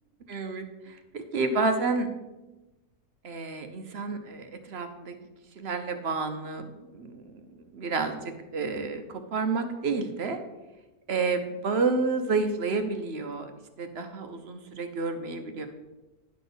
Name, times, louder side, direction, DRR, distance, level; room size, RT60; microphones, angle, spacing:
voice 1, 0.3-2.1 3.2-5.1 5.6-7.4 7.7-10.4 11.1-13.5 13.8-15.7, right 4 dB, 50° right, 7 dB, 1.0 m, -30 dB
11.0 x 4.2 x 6.8 m, 1.1 s
omnidirectional pair, 1.6 m